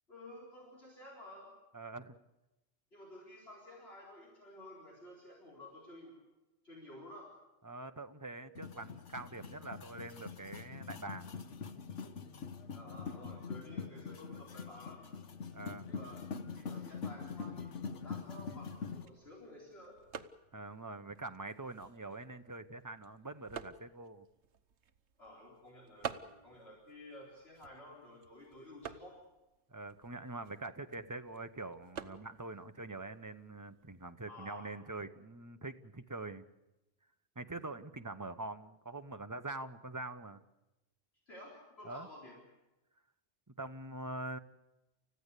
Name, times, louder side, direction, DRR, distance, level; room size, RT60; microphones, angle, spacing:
voice 1, 0.1-1.5 2.9-6.2 6.6-7.3 12.7-15.0 15.9-16.2 16.5-20.0 25.2-29.2 34.3-34.7 41.3-42.4, left 1 dB, 60° left, -3 dB, 4.5 m, -53 dB
voice 2, 1.7-2.2 7.6-11.3 15.5-15.9 20.5-24.3 29.7-36.4 37.3-40.4 41.8-42.1 43.5-44.4, right 2 dB, 20° right, 8 dB, 0.9 m, -44 dB
sound 1, 8.6-19.1, left 5 dB, 85° left, 1.4 m, -44 dB
sound 2, 18.6-34.1, right 7 dB, 70° right, 1.3 m, -51 dB
29.5 x 15.0 x 8.3 m, 0.98 s
omnidirectional pair, 1.2 m